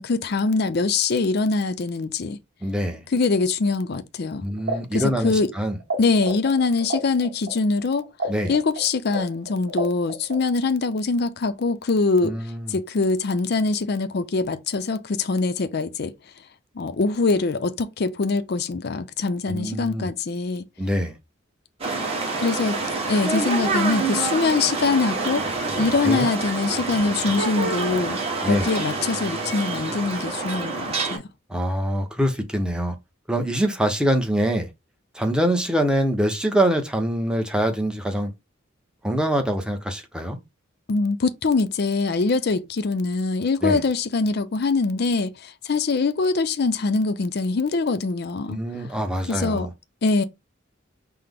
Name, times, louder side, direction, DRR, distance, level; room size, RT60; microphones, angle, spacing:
voice 1, 0.0-2.4 3.1-4.5 4.9-5.5 6.0-8.1 8.5-12.4 12.7-16.1 16.8-20.7 22.4-22.8 23.1-25.4 25.7-31.2 40.9-48.6 49.3-49.7 50.0-50.2, left 3 dB, 55° left, 0.5 m, -23 dB
voice 2, 2.6-3.0 4.4-5.8 8.3-8.6 12.2-12.8 19.5-20.1 20.8-21.2 26.0-26.3 28.4-28.7 31.5-32.9 33.3-34.7 35.1-38.3 39.0-40.4 43.6-43.8 48.5-49.7, equal, 5° right, 0.7 m, -24 dB
sound 1, 4.6-6.0 6.2-10.7, right 2 dB, 60° right, 1.1 m, -30 dB
sound 2, 21.8-31.2, right 3 dB, 30° right, 1.1 m, -27 dB
5.7 x 2.1 x 3.5 m
head